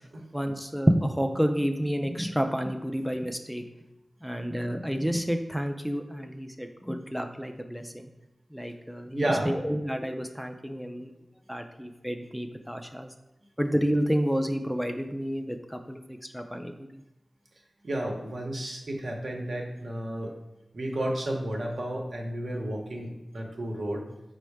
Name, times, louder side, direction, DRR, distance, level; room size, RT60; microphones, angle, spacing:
voice 1, 0.3-3.6 4.2-8.1 8.5-11.1 11.5-13.1 13.6-16.0 16.3-16.7, equal, ahead, 5 dB, 0.3 m, -29 dB
voice 2, 9.1-9.5 17.8-20.3 20.7-24.0, right 1 dB, 80° right, 0 dB, 0.8 m, -32 dB
5.3 x 2.1 x 4.6 m, 0.95 s
wide cardioid pair, 85°, 0 cm